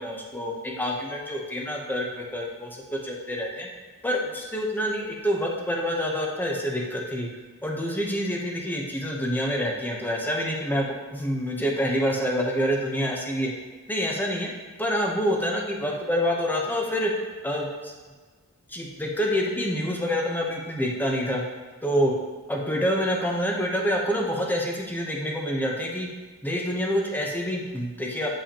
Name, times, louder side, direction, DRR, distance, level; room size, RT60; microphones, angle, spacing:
voice 1, 0.0-3.7 4.0-7.3 7.6-13.5 13.9-14.5 14.8-17.1 17.4-17.9 18.7-21.4 21.8-22.1 22.5-26.1 26.4-28.3, equal, 10° left, -1 dB, 0.9 m, -27 dB
7.7 x 7.0 x 2.9 m, 1.4 s
head